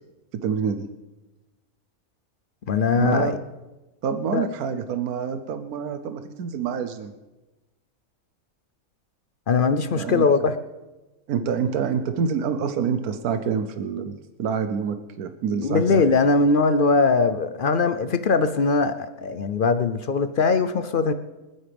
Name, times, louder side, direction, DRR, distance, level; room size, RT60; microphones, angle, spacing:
voice 1, 0.3-0.9 2.9-3.4 4.0-7.1 9.9-10.3 11.3-16.0, right 6 dB, 85° right, 9 dB, 1.3 m, -27 dB
voice 2, 2.7-3.3 4.3-4.4 9.5-10.6 15.6-21.1, left 4 dB, 60° left, 11 dB, 0.5 m, -21 dB
28.0 x 9.9 x 3.4 m, 1.1 s
omnidirectional pair, 1.5 m